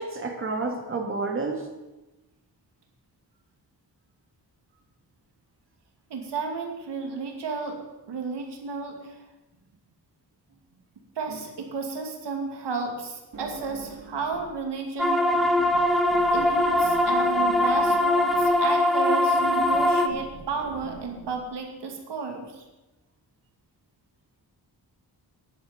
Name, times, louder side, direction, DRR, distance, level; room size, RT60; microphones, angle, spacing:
voice 1, 0.0-1.7, right 3 dB, 30° right, 2 dB, 1.9 m, -30 dB
voice 2, 6.1-7.8 8.1-9.2 11.2-15.2 16.3-22.6, right 4 dB, 85° right, 2 dB, 2.4 m, -33 dB
sound 1, 13.3-14.6 14.9-21.3, right 3 dB, 50° right, 3.2 m, -43 dB
sound 2, 15.0-20.1, left 1 dB, ahead, 0.9 m, -22 dB
10.5 x 8.7 x 8.7 m, 1.0 s
wide cardioid pair, 150°, 40 cm